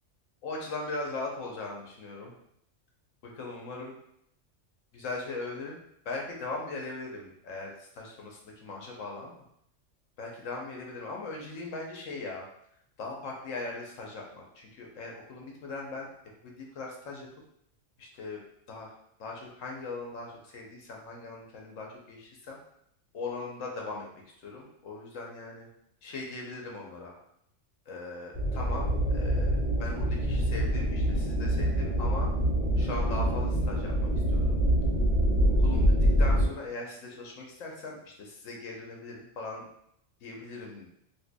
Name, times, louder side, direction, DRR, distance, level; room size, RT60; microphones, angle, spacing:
voice 1, 0.4-2.4 3.2-3.9 4.9-5.8 6.0-9.3 10.2-12.5 13.0-16.1 16.4-17.3 18.0-18.4 18.7-18.9 19.2-22.6 23.1-24.0 24.4-25.7 26.0-27.1 27.9-32.3 32.8-34.6 35.6-35.9 36.2-39.6 40.2-40.9, left 3 dB, 80° left, -1 dB, 1.1 m, -39 dB
sound 1, 28.3-36.5, equal, 10° right, 1.1 m, -25 dB
4.3 x 2.7 x 2.2 m, 0.74 s
omnidirectional pair, 1.3 m